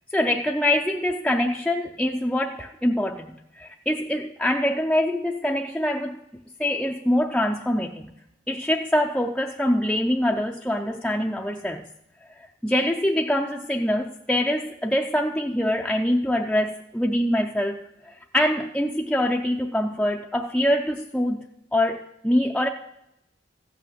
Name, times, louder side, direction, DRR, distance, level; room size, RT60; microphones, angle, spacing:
voice 1, 0.1-6.2 6.6-8.0 8.5-11.8 12.6-21.5 21.7-22.7, left 1 dB, 5° left, 1 dB, 0.4 m, -24 dB
14.5 x 5.9 x 8.3 m, 0.85 s
head